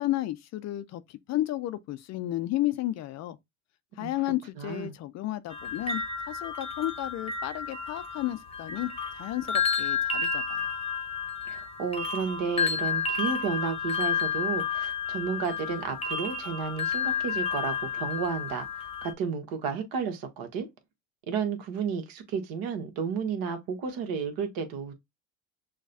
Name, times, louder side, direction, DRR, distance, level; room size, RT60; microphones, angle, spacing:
voice 1, 0.0-3.4 4.0-10.7, left 15 dB, 45° left, 0.5 m, -32 dB
voice 2, 4.6-5.0 11.5-20.7 21.3-24.9, right 6 dB, 60° right, 1.3 m, -32 dB
sound 1, 5.5-19.1, left 6 dB, 15° left, 0.9 m, -31 dB
6.3 x 2.3 x 2.6 m
hypercardioid pair, 80°, 40 cm